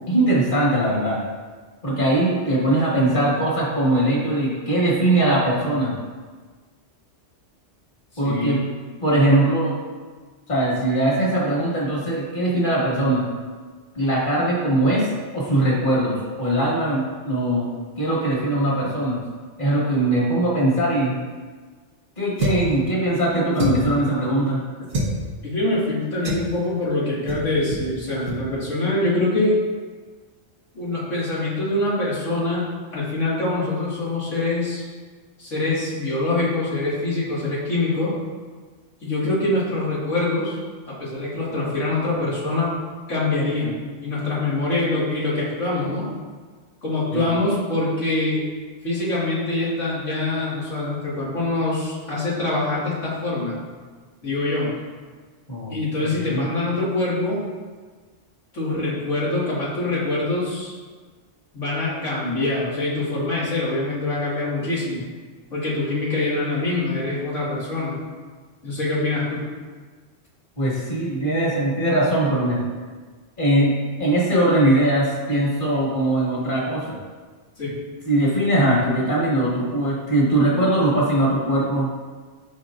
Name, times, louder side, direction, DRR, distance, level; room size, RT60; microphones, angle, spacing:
voice 1, 0.1-1.2 1.8-5.9 8.2-8.6 9.0-9.8 10.5-13.3 13.9-17.7 18.0-19.2 19.6-21.1 22.2-24.6 47.1-47.3 55.5-56.5 70.6-72.6 73.4-77.0 78.1-81.9, right 1 dB, 45° left, -5 dB, 2.1 m, -21 dB
voice 2, 8.1-8.6 25.4-29.6 30.7-32.6 32.9-34.9 35.4-38.1 39.0-40.6 40.9-42.7 43.1-46.0 46.8-48.4 48.8-53.6 54.2-54.7 55.7-57.4 58.5-60.7 61.5-65.0 65.5-68.0 68.6-69.4 77.6-77.8, left 2 dB, 85° left, -8 dB, 2.6 m, -24 dB
sound 1, 22.4-22.7 23.5-24.0 24.9-25.2 26.2-26.5 27.3-27.4 27.7-27.9 28.2-28.4, right 1 dB, 75° right, 1.6 m, -25 dB
13.0 x 4.5 x 2.6 m, 1.5 s
omnidirectional pair, 1.2 m